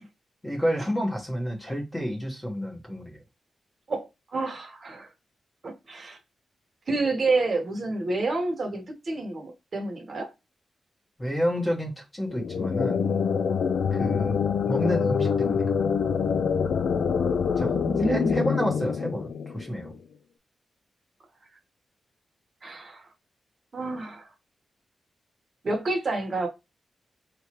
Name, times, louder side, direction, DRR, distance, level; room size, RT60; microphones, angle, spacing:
voice 1, 0.4-3.2 11.2-13.1 13.9-15.7 17.6-17.7 18.0-19.9, equal, 10° left, 1.1 m, -30 dB
voice 2, 3.9-5.1 5.6-6.2 6.9-10.3 17.7-18.5 22.6-23.1 23.7-24.3 25.6-26.5, right 3 dB, 40° right, 1.2 m, -29 dB
sound 1, 12.3-19.9, left 6 dB, 80° left, 0.4 m, -25 dB
4.9 x 3.1 x 2.9 m
wide cardioid pair, 170°, 0 cm